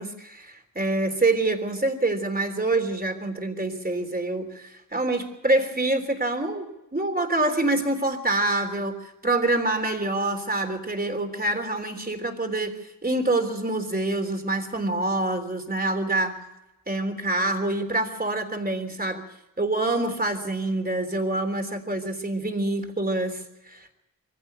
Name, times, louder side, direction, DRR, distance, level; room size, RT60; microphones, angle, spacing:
voice 1, 0.0-16.4 16.9-19.2 19.6-23.9, right 2 dB, 25° right, 7 dB, 3.5 m, -26 dB
25.0 x 15.5 x 6.8 m, 0.96 s
wide cardioid pair, 90°, 35 cm